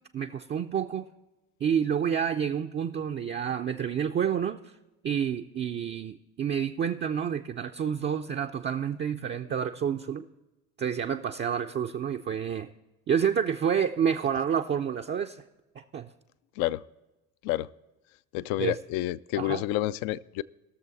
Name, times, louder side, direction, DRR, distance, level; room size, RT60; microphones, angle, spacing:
voice 1, 0.1-1.1 1.6-4.7 5.0-10.3 10.8-12.7 13.1-15.4 15.8-16.1 18.6-18.8 19.4-19.6, right 8 dB, 25° right, 4 dB, 0.5 m, -29 dB
voice 2, 18.3-20.4, left 15 dB, 55° left, 18 dB, 0.5 m, -29 dB
19.5 x 6.8 x 4.1 m, 1.0 s
hypercardioid pair, 60°, 45 cm